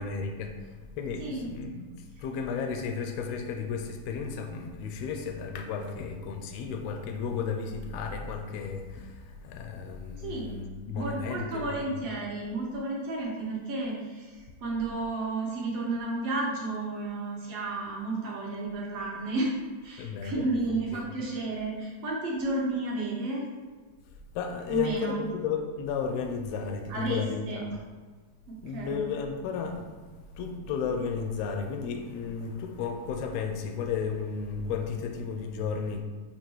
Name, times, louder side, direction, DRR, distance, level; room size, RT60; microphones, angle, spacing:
voice 1, 0.0-1.9 2.2-11.9 20.0-21.0 24.3-27.7 28.6-29.9 30.4-36.0, left 5 dB, 80° left, 5 dB, 1.5 m, -33 dB
voice 2, 10.2-10.5 10.9-19.6 19.8-23.4 24.7-25.2 26.9-27.7 28.5-29.0, right 2 dB, 65° right, -3 dB, 1.8 m, -32 dB
7.1 x 2.9 x 4.5 m, 1.4 s
omnidirectional pair, 3.4 m